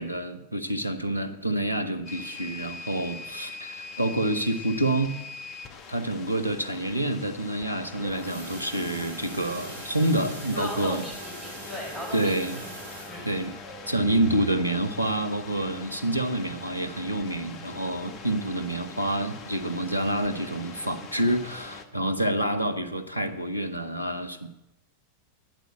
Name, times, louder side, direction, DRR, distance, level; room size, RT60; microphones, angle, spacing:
voice 1, 0.0-5.2 5.9-11.0 12.1-12.6 13.2-13.5 13.9-24.5, right 1 dB, 90° right, 8 dB, 0.9 m, -28 dB
sound 1, 2.1-21.9, left 4 dB, 35° left, 1.1 m, -43 dB
sound 2, 7.8-16.3 16.7-17.0 17.3-17.4 17.9-18.0, right 2 dB, 65° right, 3.5 m, -44 dB
voice 2, 10.5-12.7 13.1-13.3, left 1 dB, 15° left, -1 dB, 5.0 m, -37 dB
9.2 x 9.0 x 8.0 m, 0.89 s
figure-of-eight pair, 90°, 0 cm